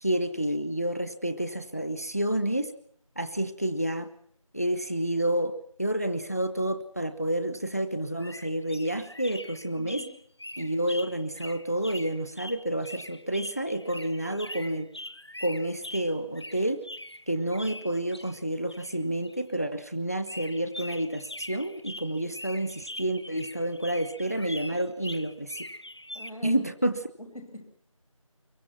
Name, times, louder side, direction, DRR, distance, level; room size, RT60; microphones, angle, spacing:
voice 1, 0.0-2.7 3.2-4.1 4.5-5.5 5.8-10.0 10.6-14.9 15.4-16.8 17.3-25.6 26.4-26.9, right 1 dB, 25° left, 10 dB, 0.9 m, -29 dB
sound 1, 8.2-18.4 18.7-19.5 19.8-19.9 20.3-26.3, left 1 dB, 50° left, 1.1 m, -43 dB
voice 2, 9.8-10.1 24.7-24.8 26.1-26.6 27.2-27.7, left 1 dB, 85° left, 5 dB, 6.1 m, -43 dB
25.5 x 23.0 x 5.8 m, 0.66 s
figure-of-eight pair, 175°, 18 cm